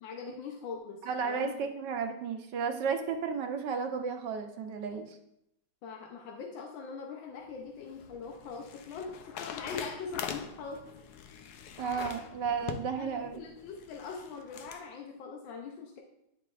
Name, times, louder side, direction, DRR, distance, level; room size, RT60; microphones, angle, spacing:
voice 1, 0.0-1.6 5.8-10.8 13.0-16.0, left 5 dB, 85° left, 1 dB, 1.5 m, -42 dB
voice 2, 1.0-5.2 11.8-13.4, right 6 dB, 75° right, 6 dB, 1.3 m, -33 dB
sound 1, 7.5-14.8, left 8 dB, 70° left, 1.0 m, -43 dB
9.8 x 4.9 x 2.4 m, 0.80 s
omnidirectional pair, 2.0 m